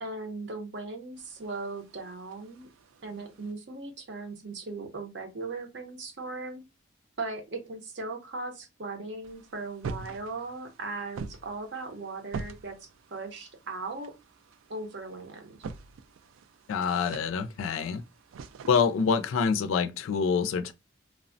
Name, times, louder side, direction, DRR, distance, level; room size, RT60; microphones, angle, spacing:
voice 1, 0.0-2.7 3.0-6.6 7.2-14.1 14.7-15.6, right 3 dB, 60° right, 0.7 m, -38 dB
sound 1, 1.2-3.5 9.2-19.5, right 4 dB, 90° right, 0.3 m, -45 dB
voice 2, 16.7-18.0 18.6-20.7, left 5 dB, 85° left, 0.3 m, -26 dB
3.2 x 2.0 x 2.5 m
head